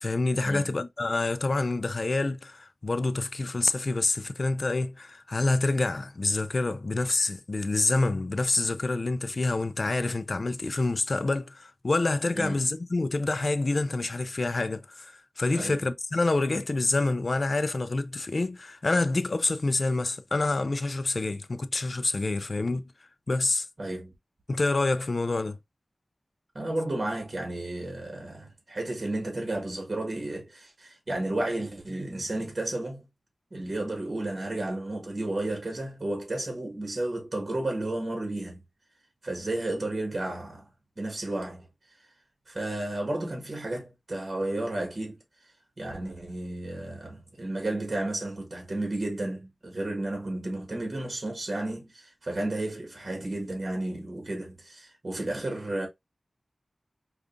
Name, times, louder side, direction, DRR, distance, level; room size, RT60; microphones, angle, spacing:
voice 1, 0.0-23.7 24.5-25.6, left 2 dB, 55° left, 0.4 m, -27 dB
voice 2, 23.8-24.1 26.5-33.1 33.5-38.6 39.2-40.7 41.0-41.7 42.5-45.2 45.8-55.9, right 2 dB, 50° right, 1.5 m, -32 dB
5.0 x 2.4 x 2.5 m
wide cardioid pair, 55°, 0 cm